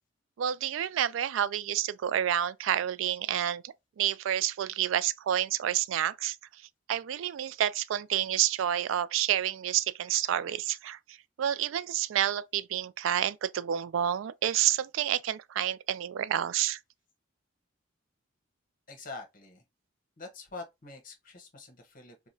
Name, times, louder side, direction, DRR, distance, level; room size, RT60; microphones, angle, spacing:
voice 1, 0.4-6.4 6.9-16.8, right 10 dB, 80° right, 0.3 m, -29 dB
voice 2, 18.9-19.6 20.2-22.3, left 3 dB, 45° left, 0.9 m, -45 dB
4.7 x 2.1 x 2.6 m
head